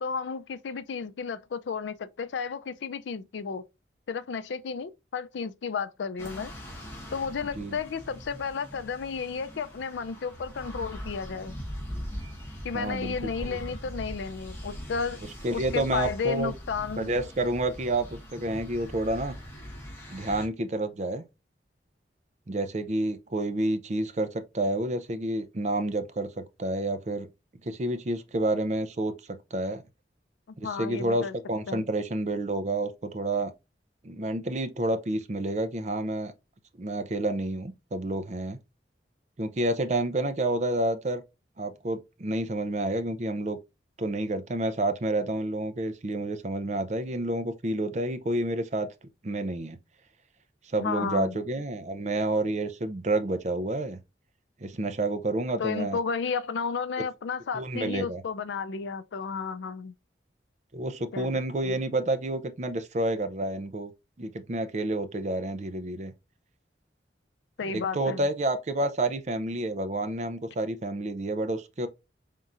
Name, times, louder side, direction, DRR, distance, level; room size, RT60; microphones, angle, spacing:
voice 1, 0.0-3.6 4.1-6.5 7.1-11.6 12.6-15.2 15.5-17.1 30.5-31.3 31.7-31.9 50.8-51.4 55.6-59.9 61.1-61.3 61.6-61.8 67.6-68.3, left 5 dB, 80° left, 0.4 m, -33 dB
sound 1, 6.2-20.5, equal, 15° left, 1.1 m, -41 dB
voice 2, 12.7-13.2 13.4-13.6 15.4-16.5 17.0-19.3 20.1-21.2 22.5-27.3 27.6-29.8 30.6-33.5 34.0-36.3 36.8-38.6 39.4-41.2 41.6-43.6 44.0-48.9 49.2-49.8 50.7-54.0 54.6-56.0 57.5-58.2 60.7-63.9 64.2-66.1 67.6-71.9, right 2 dB, 40° right, 0.5 m, -29 dB
4.2 x 3.6 x 2.5 m
head